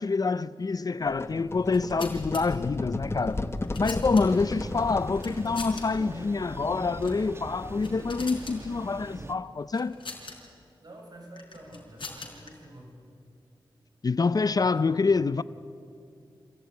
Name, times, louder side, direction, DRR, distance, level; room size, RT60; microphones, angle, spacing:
voice 1, 0.0-3.4 3.8-9.9 14.0-15.4, left 4 dB, 45° left, 0.5 m, -26 dB
sound 1, 1.0-5.9, left 2 dB, 30° left, 1.2 m, -34 dB
sound 2, 1.6-2.4 3.3-4.5 5.2-5.8 6.1-6.3 7.0-7.2 7.6-8.6 9.7-10.4 11.4-12.5, left 4 dB, 65° left, 4.6 m, -41 dB
Thunder, 4.2-9.3, right 2 dB, 30° right, 1.2 m, -42 dB
voice 2, 10.8-13.0 14.5-15.0, right 1 dB, 50° right, 6.2 m, -48 dB
26.5 x 16.5 x 9.4 m
wide cardioid pair, 80°, 9 cm